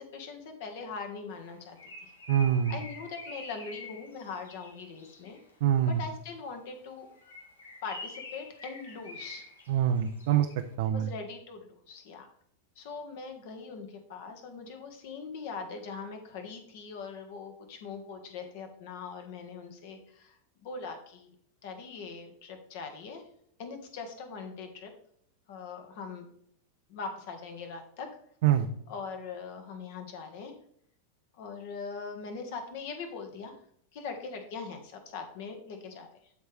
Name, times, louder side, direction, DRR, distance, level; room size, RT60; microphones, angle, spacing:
voice 1, 0.0-1.8 2.0-2.1 2.7-5.4 5.9-7.1 7.8-9.5 10.9-12.3 12.7-21.3 21.6-23.3 23.6-24.9 25.5-26.3 26.9-28.1 28.9-30.5 31.3-33.6 33.9-36.1, left 4 dB, 50° left, 5 dB, 1.5 m, -41 dB
Bird, 1.4-5.5 7.1-10.6, left 2 dB, 75° left, 1.6 m, -47 dB
voice 2, 2.3-2.8 5.6-6.0 9.7-10.5 10.8-11.1 28.4-28.7, right 10 dB, 55° right, 6 dB, 0.5 m, -25 dB
12.0 x 4.5 x 3.4 m, 0.68 s
figure-of-eight pair, 90°, 0 cm